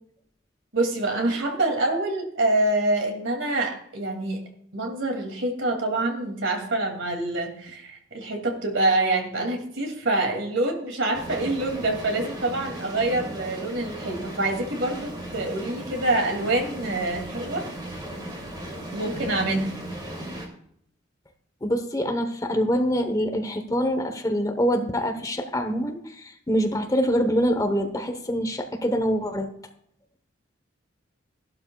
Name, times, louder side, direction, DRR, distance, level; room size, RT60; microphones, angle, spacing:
voice 1, 0.7-4.4 4.7-17.6 18.9-19.8, right 2 dB, 70° right, 3 dB, 2.5 m, -26 dB
sound 1, 11.1-20.5, right 1 dB, 25° right, 2.5 m, -37 dB
voice 2, 21.6-29.5, equal, 20° left, 6 dB, 0.9 m, -25 dB
15.0 x 12.0 x 2.3 m, 0.66 s
head